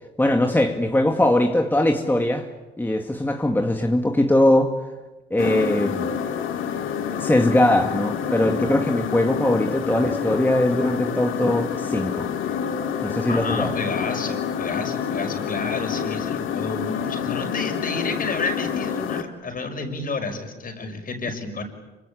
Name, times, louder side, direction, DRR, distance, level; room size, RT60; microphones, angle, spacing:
voice 1, 0.2-2.5 2.8-4.8 5.3-6.2 7.1-12.3 13.0-13.7, left 1 dB, 10° left, 3 dB, 2.1 m, -21 dB
sound 1, 5.4-19.2, left 8 dB, 90° left, 2.2 m, -28 dB
voice 2, 13.3-21.6, left 3 dB, 45° left, 6 dB, 6.0 m, -30 dB
26.5 x 25.0 x 8.6 m, 1.1 s
cardioid pair, 90°, 20 cm